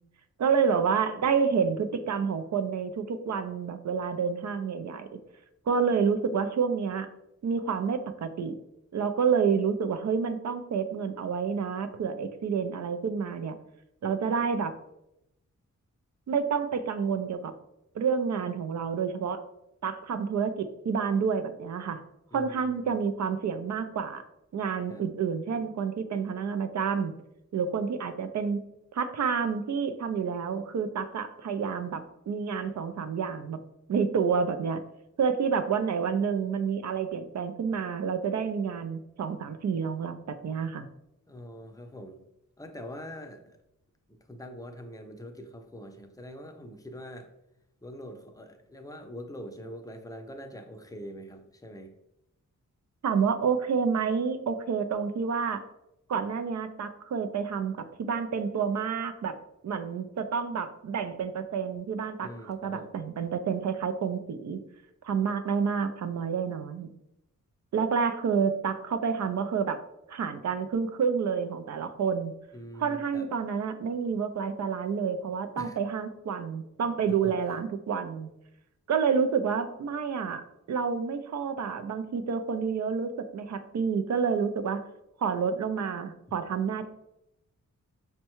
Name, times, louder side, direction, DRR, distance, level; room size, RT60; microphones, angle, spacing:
voice 1, 0.4-5.2 5.7-7.1 7.4-8.6 8.9-13.6 14.0-14.7 16.3-17.5 17.9-19.4 19.8-22.0 22.3-24.2 24.5-27.1 27.5-28.6 28.9-33.6 33.9-34.8 35.2-40.9 53.0-55.6 56.1-59.3 59.6-64.6 65.0-66.9 67.7-69.8 70.1-72.3 72.8-78.3 78.9-84.8 85.2-86.9, right 6 dB, 60° right, 9 dB, 0.4 m, -29 dB
voice 2, 22.3-23.0 24.9-25.0 41.3-42.2 42.6-43.6 44.1-47.3 47.8-51.9 62.2-62.9 72.5-73.3 75.6-75.8 77.2-77.6, equal, 10° left, 4 dB, 0.5 m, -44 dB
5.4 x 2.2 x 2.9 m, 0.84 s
cardioid pair, 70°, 32 cm